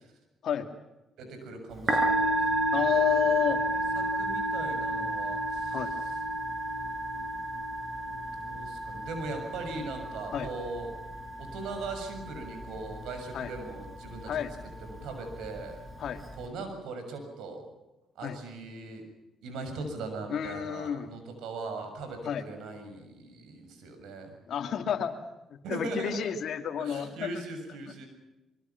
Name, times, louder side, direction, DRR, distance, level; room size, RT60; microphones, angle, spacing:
voice 1, 1.2-3.1 3.7-5.8 8.3-10.9 11.4-14.4 14.8-15.8 16.4-17.7 18.1-19.0 19.4-24.3 25.6-26.3 26.8-28.1, right 3 dB, 85° right, 6 dB, 6.9 m, -39 dB
Musical instrument, 1.7-16.4, right 1 dB, 25° right, 7.9 m, -32 dB
voice 2, 2.7-3.6 5.7-5.9 10.3-10.5 13.3-13.5 14.3-14.5 16.0-16.2 18.2-18.4 20.3-21.1 22.2-22.4 24.5-25.2 25.4-27.3, left 9 dB, 65° left, 6 dB, 2.7 m, -30 dB
25.0 x 23.5 x 6.0 m, 1.0 s
cardioid pair, 90°, 0 cm